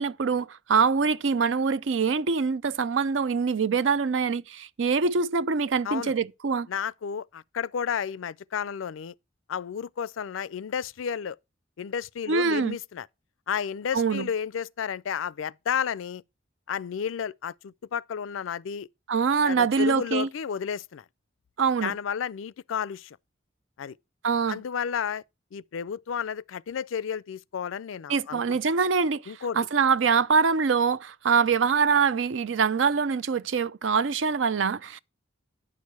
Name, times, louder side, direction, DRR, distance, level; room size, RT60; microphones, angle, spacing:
voice 1, 0.0-6.7 12.3-12.8 13.9-14.3 19.1-20.3 21.6-21.9 24.2-24.6 28.1-35.0, right 5 dB, 70° right, 0.5 m, -24 dB
voice 2, 6.7-9.1 9.5-11.4 11.8-13.1 13.5-16.2 16.7-18.9 19.4-21.0 21.8-23.2 23.8-24.0 24.5-25.2 25.5-28.6 29.3-29.6, left 7 dB, 85° left, 0.4 m, -32 dB
10.0 x 6.4 x 4.5 m
head